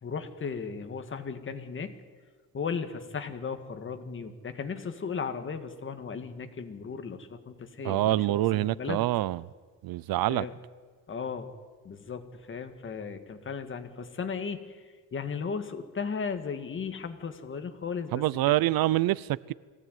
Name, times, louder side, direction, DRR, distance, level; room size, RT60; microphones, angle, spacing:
voice 1, 0.0-2.0 2.5-9.1 10.3-10.5 11.1-11.5 11.8-18.6, left 5 dB, 35° left, 1.9 m, -36 dB
voice 2, 7.8-9.4 9.8-10.5 18.1-19.5, right 15 dB, 85° right, 0.6 m, -26 dB
22.5 x 16.5 x 9.3 m
cardioid pair, 155°, 35 cm